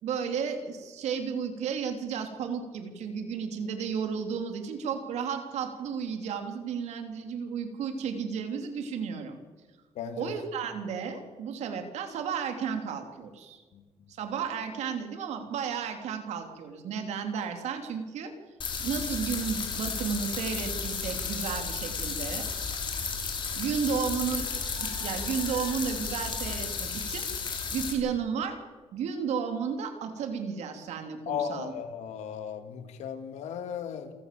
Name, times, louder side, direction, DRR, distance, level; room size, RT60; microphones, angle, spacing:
voice 1, 0.0-9.4 10.2-13.6 14.2-18.3 18.8-22.4 23.5-24.4 24.8-27.3 27.7-28.6 28.9-31.7, right 6 dB, 80° right, 6 dB, 3.3 m, -33 dB
voice 2, 10.0-10.3 13.7-13.8 31.3-34.1, left 8 dB, 80° left, 8 dB, 2.3 m, -36 dB
sound 1, 18.6-27.9, left 5 dB, 45° left, 4.9 m, -33 dB
27.5 x 14.5 x 7.8 m, 1.4 s
cardioid pair, 115°, 12 cm